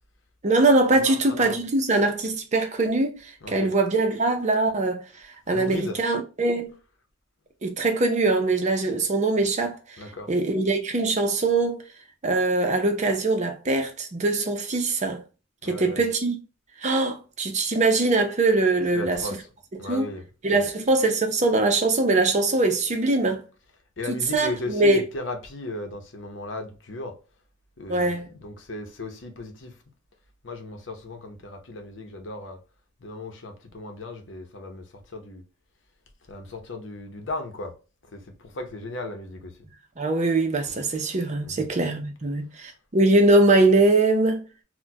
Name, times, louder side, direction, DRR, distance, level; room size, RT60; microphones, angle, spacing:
voice 1, 0.4-3.2 3.5-5.0 5.5-6.7 7.6-9.8 10.3-11.8 12.2-15.2 15.6-16.4 16.8-19.2 19.9-20.1 20.4-23.4 24.3-25.0 27.9-28.2 40.0-44.4, right 2 dB, 40° right, 0.6 m, -22 dB
voice 2, 0.9-1.6 3.4-3.7 5.5-6.0 10.0-10.3 15.6-16.1 18.9-19.5 19.8-20.7 24.0-27.2 27.8-29.8 30.4-32.6 33.0-35.4 36.3-37.8 38.1-39.7 41.4-41.7, left 2 dB, 70° left, 0.7 m, -36 dB
4.2 x 2.2 x 2.2 m
head